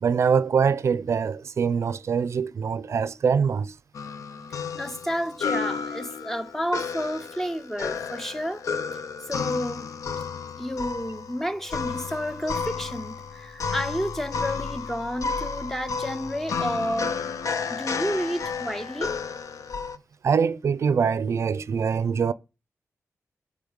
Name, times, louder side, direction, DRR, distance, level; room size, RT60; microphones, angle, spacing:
voice 1, 0.0-3.7 20.2-22.3, right 6 dB, 60° right, 0.4 m, -23 dB
sound 1, 3.9-20.0, left 5 dB, 80° left, 0.6 m, -32 dB
voice 2, 4.7-8.6 9.3-9.9 10.6-17.3 17.7-19.1, equal, 5° left, 0.5 m, -31 dB
8.5 x 5.1 x 6.2 m
wide cardioid pair, 170°, 5 cm